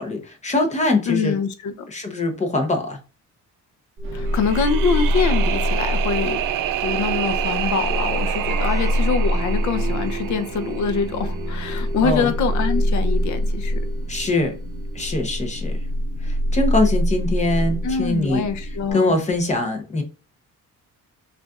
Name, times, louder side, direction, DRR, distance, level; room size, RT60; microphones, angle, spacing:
voice 1, 0.0-1.3 1.9-3.0 12.0-12.3 14.1-14.5 14.9-15.7 16.2-18.5 18.9-20.0, left 2 dB, 20° left, 0.7 m, -22 dB
voice 2, 1.1-1.9 4.1-6.4 6.8-13.8 17.8-19.1, left 5 dB, 65° left, 0.6 m, -24 dB
sound 1, 4.0-18.9, equal, 40° right, 0.6 m, -25 dB
sound 2, 4.3-11.4, right 12 dB, 85° right, 0.5 m, -28 dB
sound 3, 8.5-16.0, left 2 dB, 80° left, 1.1 m, -46 dB
6.1 x 2.5 x 2.3 m
cardioid pair, 165°, 32 cm